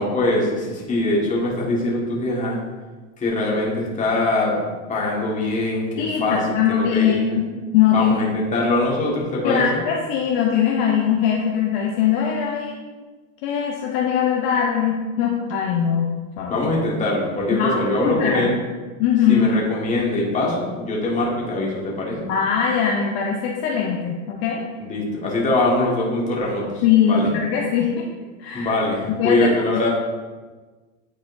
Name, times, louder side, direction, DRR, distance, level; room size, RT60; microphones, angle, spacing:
voice 1, 0.0-2.6 3.2-4.6 4.9-7.2 7.9-9.7 16.5-18.6 19.3-22.3 24.8-27.3 28.5-29.9, left 2 dB, 20° left, -4 dB, 1.6 m, -22 dB
voice 2, 6.0-7.5 7.7-8.2 9.4-12.8 13.4-16.1 16.4-16.7 17.6-18.5 19.0-19.5 22.3-24.6 26.8-27.9 28.4-28.7 29.2-29.8, left 8 dB, 45° left, -1 dB, 0.8 m, -21 dB
9.5 x 4.2 x 2.6 m, 1.3 s
supercardioid pair, 135°, 40 cm